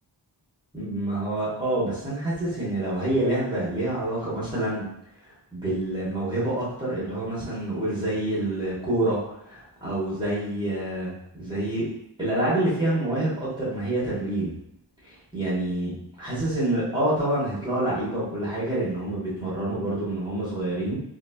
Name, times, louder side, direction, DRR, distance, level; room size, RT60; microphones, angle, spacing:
voice 1, 0.7-4.9 5.5-9.2 9.5-11.9 12.2-14.5 15.3-15.9 16.2-21.0, right 1 dB, 10° right, -10 dB, 1.2 m, -27 dB
2.8 x 2.6 x 2.3 m, 0.79 s
wide cardioid pair, 135°, 42 cm